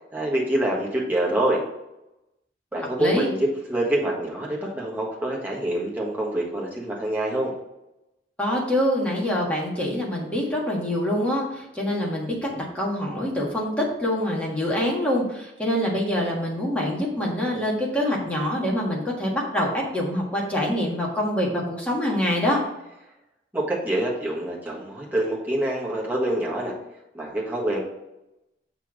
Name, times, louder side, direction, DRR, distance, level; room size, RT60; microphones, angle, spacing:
voice 1, 0.1-1.6 2.7-7.5 23.5-26.7 27.1-27.8, right 1 dB, 10° right, -4 dB, 1.5 m, -26 dB
voice 2, 8.4-22.6, left 1 dB, 5° left, -3 dB, 1.6 m, -25 dB
6.9 x 3.4 x 6.2 m, 0.90 s
head